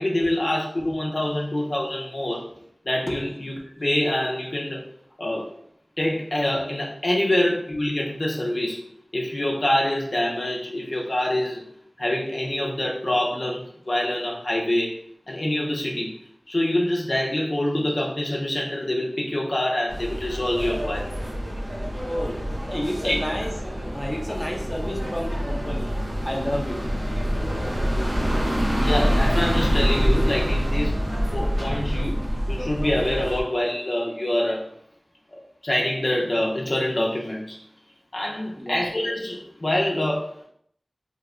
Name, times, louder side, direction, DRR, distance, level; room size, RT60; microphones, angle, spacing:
voice 1, 0.0-2.4 2.8-3.5 3.8-4.9 5.2-5.5 6.0-8.8 9.1-11.6 12.0-15.0 15.3-16.1 16.5-21.2 23.0-23.2 28.8-31.0 31.3-34.7 35.6-37.6 38.1-40.3, left 1 dB, 55° left, -3 dB, 0.6 m, -25 dB
sound 1, 19.9-33.4, equal, 80° right, 0.8 m, -26 dB
voice 2, 22.0-22.4 22.7-23.5 23.9-25.9 26.2-26.8 38.6-38.8, equal, 15° left, -1 dB, 0.7 m, -30 dB
2.9 x 2.1 x 3.6 m, 0.68 s
wide cardioid pair, 55°, 0 cm